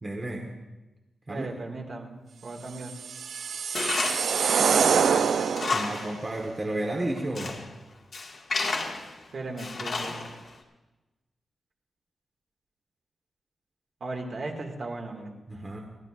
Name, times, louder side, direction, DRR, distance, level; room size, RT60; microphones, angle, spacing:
voice 1, 0.0-0.6 1.3-1.5 5.7-7.6 15.5-15.8, right 1 dB, 25° right, 1 dB, 1.2 m, -32 dB
voice 2, 1.3-2.1 2.4-2.9 9.3-10.2 14.0-15.3, right 2 dB, 55° right, 1 dB, 2.0 m, -36 dB
sound 1, 2.8-6.0, right 6 dB, 80° right, 0.4 m, -25 dB
Tools, 3.8-4.4 4.8-4.9 5.3-6.2 6.4-6.5 7.1-7.7 8.1-9.1 9.6-10.5, left 3 dB, 55° left, 1.5 m, -31 dB
28.0 x 11.0 x 2.5 m, 1.1 s
wide cardioid pair, 120°, 0 cm